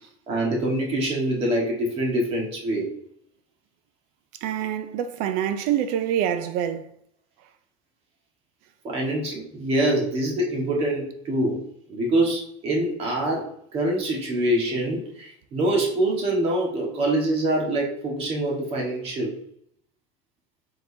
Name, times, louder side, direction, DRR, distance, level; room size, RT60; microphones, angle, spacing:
voice 1, 0.3-2.9 8.8-11.6 11.9-19.4, right 1 dB, 35° right, 1.5 m, -25 dB
voice 2, 4.4-6.9, right 10 dB, 60° right, 0.5 m, -26 dB
4.3 x 3.8 x 2.7 m
supercardioid pair, 140°, 17 cm